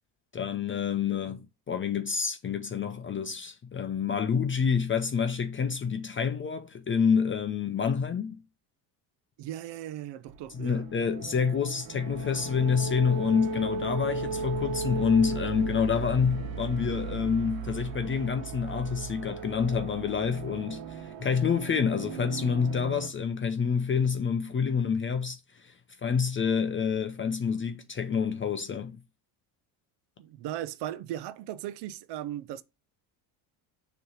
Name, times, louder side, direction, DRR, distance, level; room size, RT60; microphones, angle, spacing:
voice 1, 0.3-8.4 10.5-25.7 26.0-29.0, left 6 dB, 25° left, 0.7 m, -28 dB
voice 2, 9.4-10.9 30.2-32.6, right 12 dB, 60° right, 0.7 m, -37 dB
sound 1, 10.3-23.1, right 6 dB, 80° right, 1.3 m, -37 dB
sound 2, 12.2-17.3, left 11 dB, 60° left, 0.8 m, -43 dB
6.8 x 3.2 x 5.8 m
supercardioid pair, 105°, 46 cm